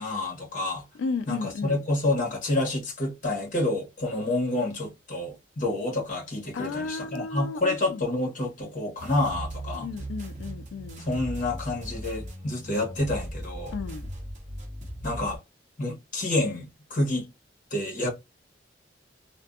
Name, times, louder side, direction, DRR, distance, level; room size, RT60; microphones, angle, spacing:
voice 1, 0.0-0.8 1.3-9.9 11.0-13.7 15.0-15.4 15.8-17.3 17.7-18.1, left 2 dB, 45° left, 1.0 m, -28 dB
voice 2, 1.0-1.8 6.5-8.0 9.7-11.0 13.7-14.1, left 4 dB, 85° left, 0.3 m, -34 dB
sound 1, 9.0-15.4, right 1 dB, 40° right, 0.8 m, -38 dB
2.6 x 2.1 x 2.3 m
head